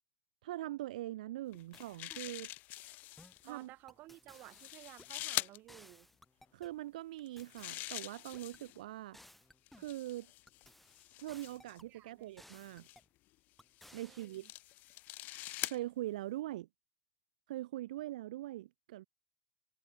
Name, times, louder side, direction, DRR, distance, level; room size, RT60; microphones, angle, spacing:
voice 1, 0.4-2.5 3.4-3.7 6.5-9.2 9.8-10.3 11.2-12.9 13.9-14.5 15.6-16.7 17.5-19.0, right 15 dB, 80° right, 0.6 m, -42 dB
sound 1, 1.5-3.5 4.3-5.6 7.2-8.8 9.7-11.8 12.6-13.0 13.8-15.8, left 18 dB, 45° left, 0.6 m, -44 dB
sound 2, 1.7-2.3 3.2-3.5 3.9-5.3 5.7-6.8 7.4-8.6 9.1-10.0 10.5-11.9 12.4-13.1 13.6-14.3, left 1 dB, 5° left, 1.3 m, -60 dB
voice 2, 3.5-6.1 11.9-12.4 14.0-14.5, right 17 dB, 45° right, 2.6 m, -55 dB
supercardioid pair, 120°, 4 cm